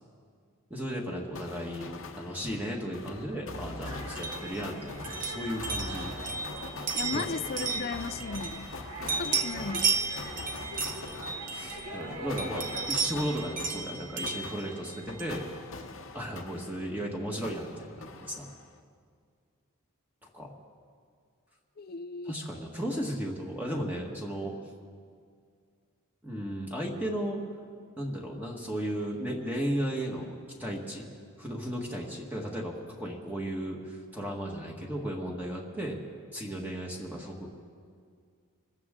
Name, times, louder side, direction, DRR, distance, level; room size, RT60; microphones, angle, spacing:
voice 1, 0.7-6.1 7.1-7.3 9.0-9.4 11.5-15.5 16.1-18.5 20.2-20.5 22.3-24.5 26.2-27.4 28.0-31.1 31.4-36.0 36.3-37.5, equal, 10° right, -1 dB, 1.5 m, -35 dB
sound 1, 1.3-17.1 17.4-18.8, left 3 dB, 60° left, 1.0 m, -43 dB
sound 2, 3.8-12.9, right 1 dB, 85° right, 2.1 m, -43 dB
sound 3, 4.1-8.8 9.1-12.0 12.4-15.4, right 5 dB, 35° right, 1.1 m, -34 dB
voice 2, 6.9-8.7 9.0-10.0 21.8-22.3, left 4 dB, 45° left, 14 dB, 0.5 m, -36 dB
26.0 x 14.0 x 3.7 m, 2.1 s
head